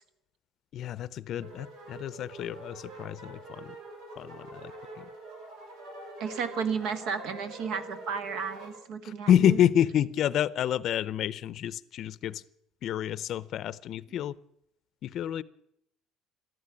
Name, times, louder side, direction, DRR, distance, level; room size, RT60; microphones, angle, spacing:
voice 1, 0.7-3.8 4.2-5.1 9.0-12.4 12.8-14.3 15.0-15.4, left 10 dB, 55° left, 0.6 m, -28 dB
sound 1, 1.4-8.8, right 2 dB, 85° right, 6.7 m, -45 dB
voice 2, 6.2-9.6, right 6 dB, 70° right, 1.7 m, -33 dB
13.5 x 11.5 x 8.5 m
cardioid pair, 130°, 0 cm